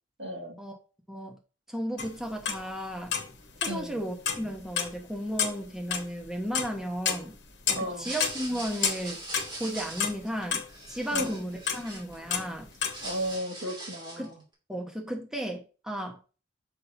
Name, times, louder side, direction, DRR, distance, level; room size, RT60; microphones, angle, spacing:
voice 1, 0.2-0.6 3.7-4.0 7.7-8.1 11.1-11.4 13.0-14.4, equal, 85° right, 1 dB, 2.0 m, -35 dB
voice 2, 1.1-1.4 1.7-3.1 3.6-7.3 7.7-9.2 9.6-12.7 14.2-14.3 14.7-16.2, equal, 5° right, 1 dB, 1.2 m, -34 dB
sound 1, 2.0-2.6 2.9-3.9 4.2-5.0 5.2-7.9 8.2-10.7 11.1-13.0, left 7 dB, 65° left, 1.2 m, -30 dB
sound 2, 7.9-12.4 12.7-14.3, right 2 dB, 25° right, 2.3 m, -41 dB
6.4 x 5.8 x 2.7 m, 0.34 s
head